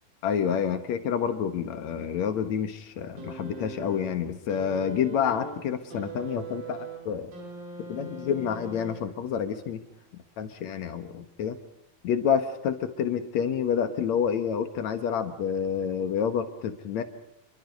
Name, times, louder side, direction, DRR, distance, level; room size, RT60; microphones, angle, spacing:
voice 1, 0.2-7.3 7.9-9.8 10.4-11.6 12.0-17.0, left 8 dB, 60° left, 9 dB, 2.3 m, -28 dB
sound 1, 3.2-9.3 10.4-10.5, right 3 dB, 70° right, 6.8 m, -41 dB
29.0 x 23.0 x 5.4 m, 0.82 s
omnidirectional pair, 4.2 m